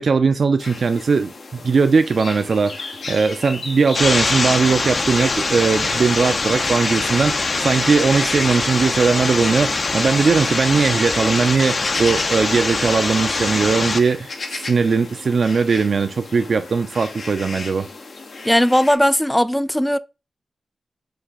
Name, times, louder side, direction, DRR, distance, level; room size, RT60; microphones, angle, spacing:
voice 1, 0.0-17.9, right 5 dB, 70° right, 0.4 m, -19 dB
sound 1, 0.6-19.0, left 3 dB, 80° left, 0.9 m, -35 dB
sound 2, 3.9-14.0, left 3 dB, 60° left, 0.6 m, -23 dB
voice 2, 18.5-20.0, equal, 5° left, 0.4 m, -17 dB
5.0 x 2.6 x 3.5 m
cardioid pair, 45°, 0 cm